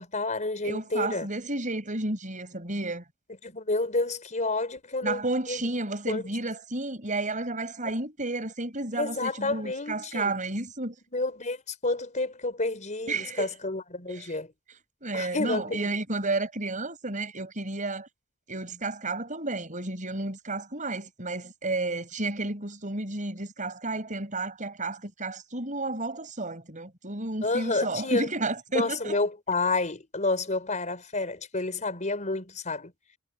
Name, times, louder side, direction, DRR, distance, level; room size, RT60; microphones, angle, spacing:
voice 1, 0.0-1.3 3.4-5.6 6.1-6.2 7.8-7.9 8.9-10.3 11.1-14.5 15.1-15.8 27.4-28.3 28.7-32.9, left 3 dB, 35° left, 4.6 m, -30 dB
voice 2, 0.6-3.0 5.0-10.9 13.1-13.5 14.1-14.3 15.0-18.1 18.5-29.2, right 2 dB, 40° right, 6.3 m, -32 dB
head